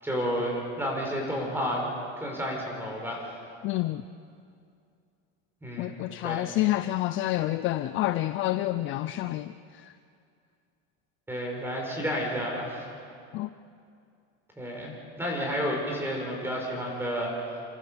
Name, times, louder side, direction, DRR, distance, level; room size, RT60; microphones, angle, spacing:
voice 1, 0.0-1.8 2.2-3.3 5.6-6.0 6.2-6.5 11.3-12.8 14.6-17.6, equal, 5° right, 4.7 m, -31 dB
voice 2, 3.6-4.0 5.8-9.9 13.3-13.5, left 15 dB, 35° left, 0.5 m, -28 dB
28.5 x 14.0 x 6.8 m
cardioid pair, 155°, 34 cm